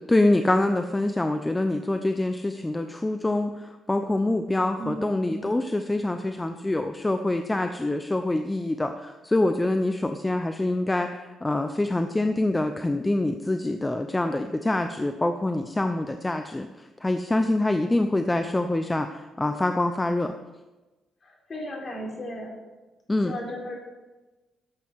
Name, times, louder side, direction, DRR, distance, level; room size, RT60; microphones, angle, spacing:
voice 1, 0.1-20.4 23.1-23.3, left 2 dB, 15° left, 7 dB, 0.7 m, -25 dB
voice 2, 4.8-5.6 21.2-22.5 23.2-23.7, equal, 40° left, -1 dB, 4.2 m, -36 dB
13.0 x 7.8 x 4.7 m, 1.1 s
cardioid pair, 90°, 0 cm